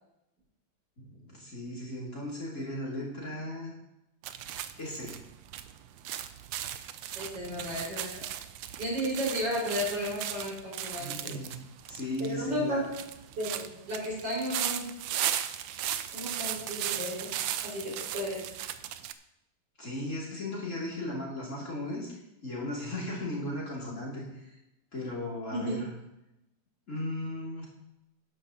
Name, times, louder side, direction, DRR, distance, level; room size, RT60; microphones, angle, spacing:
voice 1, 1.0-3.8 4.8-5.2 6.0-6.1 11.0-11.6 11.9-12.8 19.8-22.1 22.4-24.5 24.9-25.9 26.9-27.7, left 1 dB, 35° left, -4 dB, 3.0 m, -36 dB
sound 1, 4.2-19.1, right 11 dB, 75° right, 1.2 m, -37 dB
voice 2, 7.1-8.3 8.8-11.4 12.2-12.8 13.3-14.9 16.1-17.3 17.6-18.4 25.5-25.7, equal, 55° right, -5 dB, 5.5 m, -33 dB
12.5 x 10.5 x 2.9 m, 0.87 s
omnidirectional pair, 2.3 m